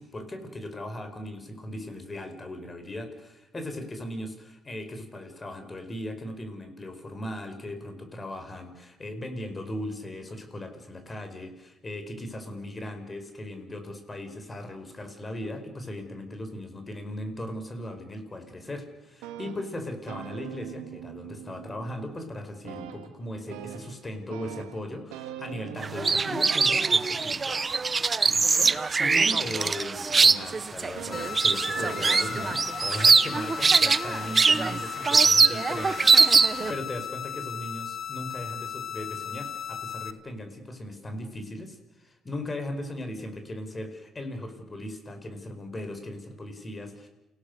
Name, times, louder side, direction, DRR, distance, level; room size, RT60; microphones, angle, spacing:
voice 1, 0.0-27.6 28.0-47.1, left 1 dB, 25° left, 7 dB, 5.0 m, -38 dB
sound 1, 19.0-22.3 22.6-34.2 35.1-35.9 36.6-37.0, right 11 dB, 90° right, 1.6 m, -44 dB
sound 2, 25.8-36.7, right 4 dB, 30° right, 0.8 m, -22 dB
sound 3, 31.1-40.1, left 8 dB, 50° left, 1.2 m, -36 dB
29.0 x 17.5 x 6.8 m, 0.96 s
supercardioid pair, 75°, 0 cm